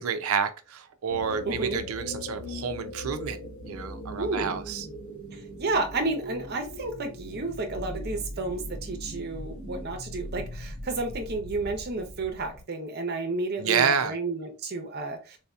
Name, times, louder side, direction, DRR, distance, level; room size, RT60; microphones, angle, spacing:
voice 1, 0.0-4.9 13.6-14.1, right 6 dB, 85° right, 0.5 m, -29 dB
sound 1, 1.1-12.6, equal, 35° left, 1.8 m, -40 dB
voice 2, 1.4-1.8 4.2-4.6 5.3-15.4, right 3 dB, 50° right, 0.8 m, -31 dB
4.1 x 2.7 x 2.3 m
head